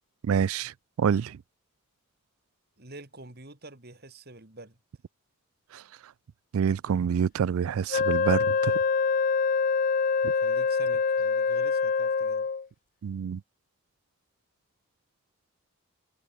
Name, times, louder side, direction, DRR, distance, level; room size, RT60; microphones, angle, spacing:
voice 1, 0.2-0.7 1.0-1.4 5.7-5.8 6.5-8.8 13.0-13.4, right 7 dB, 75° right, 0.3 m, -26 dB
voice 2, 2.8-4.8 10.3-12.5, right 2 dB, 45° right, 2.8 m, -47 dB
Wind instrument woodwind instrument, 7.9-12.7, left 5 dB, 40° left, 0.4 m, -25 dB
head